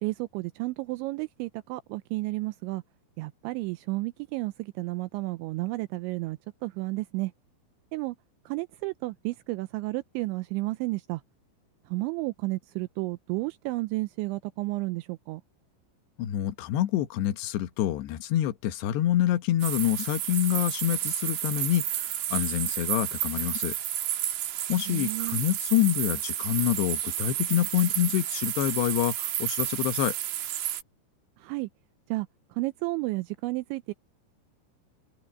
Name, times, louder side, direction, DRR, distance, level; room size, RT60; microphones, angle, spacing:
voice 1, 0.0-2.8 3.2-7.3 7.9-8.2 8.5-11.2 11.9-15.4 24.9-25.4 31.4-31.7 32.1-33.9, right 21 dB, 85° right, 2.7 m, -32 dB
voice 2, 16.2-23.7 24.7-30.1, left 13 dB, 70° left, 3.0 m, -27 dB
sound 1, 19.6-30.8, right 12 dB, 65° right, 3.3 m, -31 dB
omnidirectional pair, 5.7 m